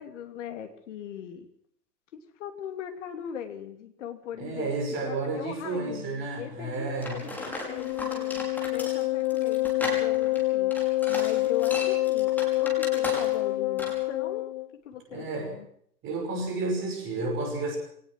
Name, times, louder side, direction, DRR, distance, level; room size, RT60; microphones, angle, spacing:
voice 1, 0.0-1.5 2.1-8.4 8.7-12.3 12.6-14.5 14.8-15.7, left 9 dB, 45° left, 7 dB, 3.0 m, -40 dB
voice 2, 4.4-7.4 15.1-15.5 16.0-17.8, right 3 dB, 25° right, 4 dB, 5.9 m, -31 dB
sound 1, 7.0-13.5 13.8-14.0, left 1 dB, 5° left, 5.5 m, -36 dB
Wind instrument woodwind instrument, 7.6-14.7, left 18 dB, 25° left, 0.7 m, -27 dB
23.0 x 19.0 x 6.2 m, 0.66 s
figure-of-eight pair, 110°, 48 cm